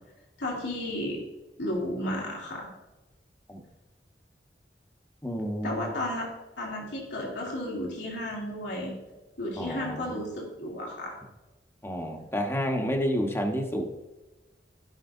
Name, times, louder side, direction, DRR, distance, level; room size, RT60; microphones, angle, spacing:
voice 1, 0.4-1.2 1.6-2.7 5.6-6.3 6.6-8.9 9.4-11.1, left 1 dB, 85° left, -3 dB, 2.6 m, -33 dB
voice 2, 5.2-5.9 9.6-10.1 11.8-13.8, equal, 15° left, 2 dB, 1.2 m, -30 dB
16.0 x 5.7 x 2.7 m, 1.1 s
head